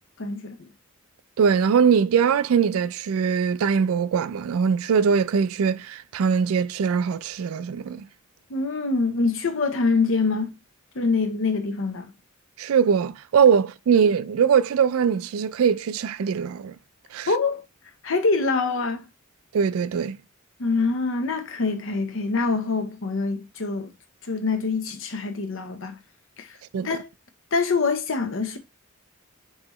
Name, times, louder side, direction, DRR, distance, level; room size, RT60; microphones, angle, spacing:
voice 1, 0.2-0.7 8.5-10.6 10.9-12.1 17.3-17.7 18.0-19.1 20.6-23.9 24.3-26.0 26.4-26.5 26.8-27.1 27.5-28.6, left 4 dB, 60° left, 0.8 m, -25 dB
voice 2, 1.4-8.1 12.6-16.7 17.1-17.3 19.5-20.2 26.7-26.9, right 6 dB, 75° right, 0.3 m, -21 dB
5.4 x 2.8 x 3.0 m
head